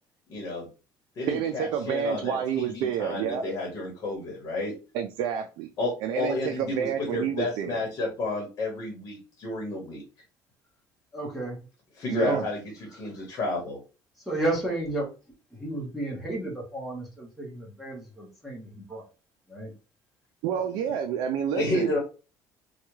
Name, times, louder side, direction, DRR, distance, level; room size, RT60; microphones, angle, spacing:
voice 1, 0.3-0.7 1.2-4.7 5.8-10.0 11.9-13.8 20.5-20.9 21.6-22.0, left 2 dB, 40° left, 1.1 m, -31 dB
voice 2, 1.3-3.5 4.9-5.7 6.0-7.8 12.1-12.5 20.4-21.9, right 8 dB, 75° right, 0.4 m, -29 dB
voice 3, 11.1-11.6 12.2-12.4 14.3-15.1 15.6-19.0 19.5-19.7, right 1 dB, ahead, 1.1 m, -32 dB
3.4 x 2.3 x 3.0 m
cardioid pair, 175°, 8 cm